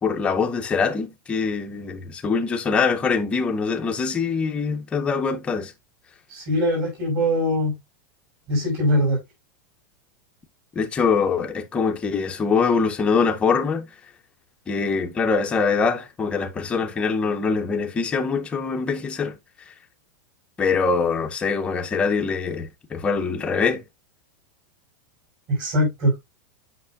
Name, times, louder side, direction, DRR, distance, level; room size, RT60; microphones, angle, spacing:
voice 1, 0.0-5.7 10.8-13.9 14.7-19.3 20.6-23.8, left 5 dB, 10° left, 0.6 m, -23 dB
voice 2, 6.3-7.7 8.5-9.2 25.5-26.1, equal, 35° right, 5.4 m, -22 dB
7.9 x 5.9 x 2.3 m
supercardioid pair, 180°, 10 cm